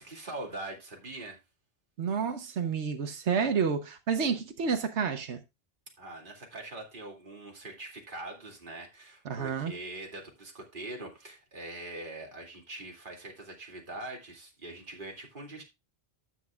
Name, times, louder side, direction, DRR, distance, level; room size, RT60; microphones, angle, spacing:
voice 1, 0.0-1.4 6.0-15.6, right 2 dB, 45° right, 2.7 m, -43 dB
voice 2, 2.0-5.4 9.2-9.7, right 6 dB, 80° right, 1.4 m, -29 dB
12.5 x 7.9 x 2.4 m
omnidirectional pair, 1.2 m